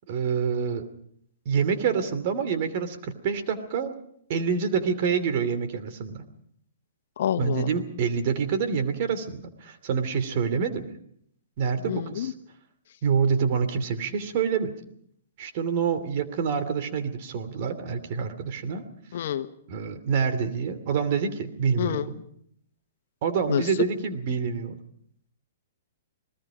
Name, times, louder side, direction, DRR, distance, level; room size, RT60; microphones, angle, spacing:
voice 1, 0.1-0.9 1.4-3.9 4.3-6.2 7.4-10.9 11.6-12.3 13.0-14.7 15.4-18.8 19.7-22.2 23.2-24.8, right 6 dB, 50° right, 10 dB, 2.8 m, -27 dB
voice 2, 7.2-7.7 11.8-12.3 19.1-19.5 21.8-22.1 23.5-23.6, left 10 dB, 60° left, 9 dB, 1.4 m, -27 dB
29.0 x 19.5 x 5.1 m, 0.66 s
hypercardioid pair, 140°, 0 cm